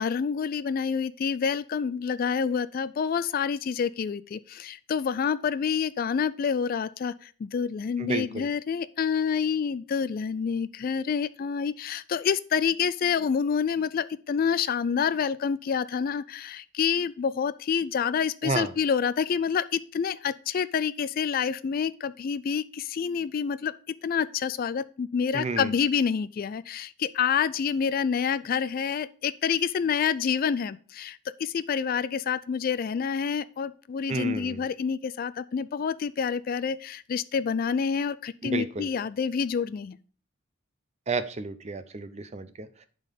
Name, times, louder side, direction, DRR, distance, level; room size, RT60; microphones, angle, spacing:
voice 1, 0.0-40.0, left 6 dB, 45° left, 15 dB, 0.3 m, -28 dB
voice 2, 8.0-8.5 18.4-18.7 25.3-25.7 34.1-34.7 38.4-38.9 41.1-42.8, right 3 dB, 30° right, 11 dB, 0.6 m, -31 dB
10.5 x 3.9 x 5.2 m, 0.39 s
head